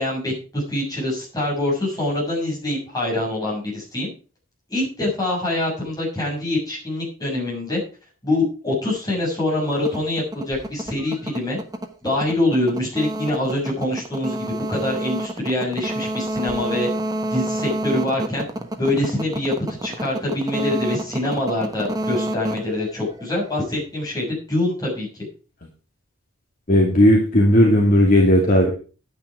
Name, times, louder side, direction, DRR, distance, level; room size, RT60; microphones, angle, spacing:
voice 1, 0.0-4.1 4.7-7.8 8.2-11.6 12.0-16.9 17.3-18.5 18.8-19.5 19.8-25.3, left 1 dB, 20° left, -4 dB, 6.8 m, -24 dB
sound 1, 9.7-23.6, right 1 dB, 15° right, 1.2 m, -29 dB
voice 2, 26.7-28.7, equal, 40° left, 0 dB, 2.4 m, -15 dB
11.0 x 9.7 x 4.8 m, 0.35 s
head